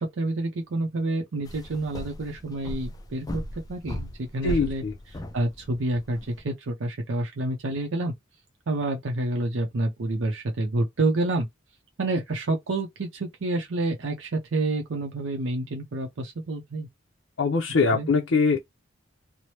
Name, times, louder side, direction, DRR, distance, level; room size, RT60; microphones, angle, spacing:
voice 1, 0.0-3.4 3.7-8.1 8.7-11.5 12.0-16.9 17.9-18.1, right 2 dB, 75° right, 0.6 m, -28 dB
sound 1, 1.4-6.4, left 1 dB, 20° left, 0.4 m, -37 dB
voice 2, 4.4-4.9 17.4-18.6, left 4 dB, 70° left, 0.5 m, -22 dB
3.2 x 2.0 x 2.8 m
head